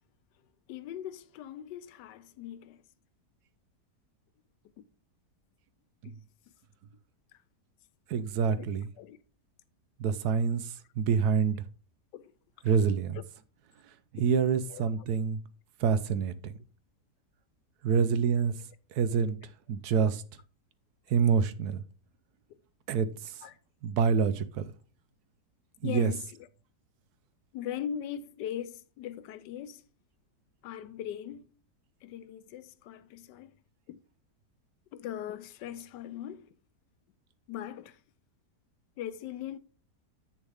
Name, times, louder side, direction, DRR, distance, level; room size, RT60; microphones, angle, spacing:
voice 1, 0.7-2.8 4.8-4.9 6.0-6.1 8.5-8.7 9.0-9.2 12.1-12.3 13.1-13.2 14.7-14.8 23.4-23.6 25.8-26.2 27.5-29.8 30.6-31.5 32.0-33.5 33.9-34.0 34.9-36.5 37.5-38.0 39.0-39.6, left 10 dB, 90° left, 1.3 m, -40 dB
voice 2, 8.1-8.9 10.0-11.6 12.6-13.2 14.1-15.4 15.8-16.5 17.8-18.6 18.9-19.4 19.7-20.2 21.1-21.8 22.9-23.5 23.8-24.6 25.8-26.1, right 6 dB, 70° right, 1.2 m, -27 dB
8.1 x 6.8 x 3.5 m
omnidirectional pair, 1.8 m